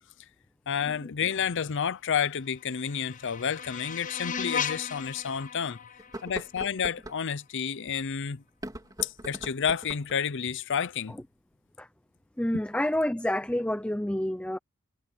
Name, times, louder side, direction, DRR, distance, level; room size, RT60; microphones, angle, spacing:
voice 1, 0.7-5.8 6.2-8.4 9.0-11.1, left 7 dB, 55° left, 0.6 m, -30 dB
sound 1, 2.3-7.3, left 7 dB, 35° left, 0.9 m, -37 dB
sound 2, 4.0-4.1 4.7-4.8 6.0-7.2 8.5-10.2, right 1 dB, 15° right, 3.3 m, -41 dB
voice 2, 12.4-14.6, left 1 dB, 5° left, 0.6 m, -28 dB
head